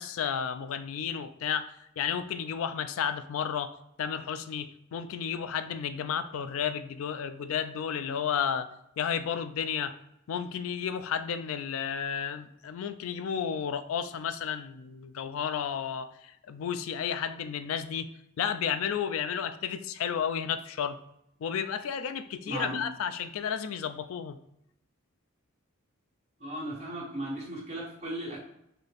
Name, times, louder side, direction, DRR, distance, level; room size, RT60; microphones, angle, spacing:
voice 1, 0.0-3.7 4.0-8.7 9.0-10.0 10.3-18.1 18.4-21.0 21.4-24.4, left 7 dB, 75° left, 11 dB, 0.3 m, -32 dB
voice 2, 22.5-22.8 26.4-28.4, right 1 dB, 30° right, -5 dB, 1.1 m, -36 dB
3.9 x 2.8 x 3.4 m, 0.79 s
head